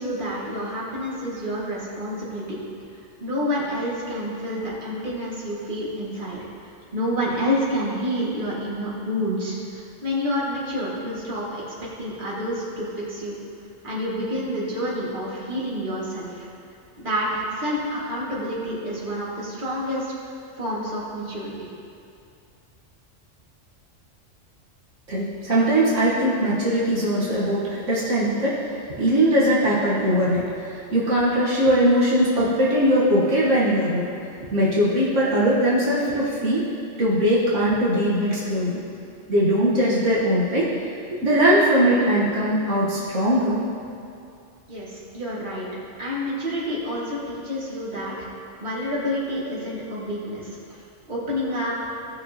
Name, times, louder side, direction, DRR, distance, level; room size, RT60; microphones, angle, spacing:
voice 1, 0.0-2.6 3.2-6.4 6.9-13.3 13.8-16.5 17.0-21.5 44.7-45.7 46.0-48.3 48.6-50.8 51.1-51.9, equal, 40° right, -7 dB, 2.2 m, -28 dB
voice 2, 25.1-28.6 29.0-34.1 34.5-36.6 37.0-38.8 39.3-40.7 41.1-43.6, equal, 75° right, -7 dB, 1.8 m, -20 dB
16.5 x 6.4 x 2.9 m, 2.5 s
omnidirectional pair, 1.3 m